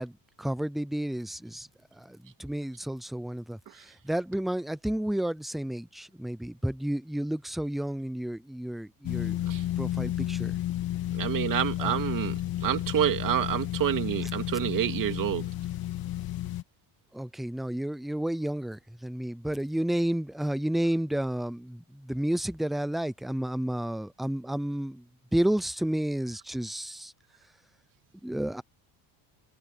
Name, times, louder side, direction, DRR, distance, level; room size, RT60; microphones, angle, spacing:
voice 1, 0.0-9.4 9.8-10.6 11.8-12.0 17.1-25.0 25.3-27.1 28.2-28.6, right 1 dB, ahead, 0.4 m, -31 dB
sound 1, 9.0-16.6, left 13 dB, 50° left, 2.1 m, -32 dB
voice 2, 11.1-15.5, right 11 dB, 45° right, 2.3 m, -28 dB
cardioid pair, 170°, 45 cm